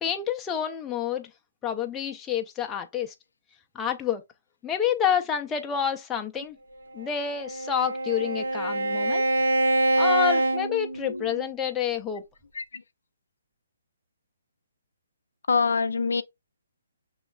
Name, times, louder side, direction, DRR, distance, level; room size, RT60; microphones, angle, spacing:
voice 1, 0.0-1.3 1.6-3.1 3.7-4.2 4.6-6.6 6.9-9.2 10.0-12.2, left 9 dB, 15° left, 0.5 m, -28 dB
Bowed string instrument, 7.0-11.5, right 1 dB, 85° right, 0.9 m, -25 dB
voice 2, 15.5-16.2, left 5 dB, 80° left, 0.4 m, -24 dB
6.0 x 3.1 x 2.3 m
hypercardioid pair, 150°, 0 cm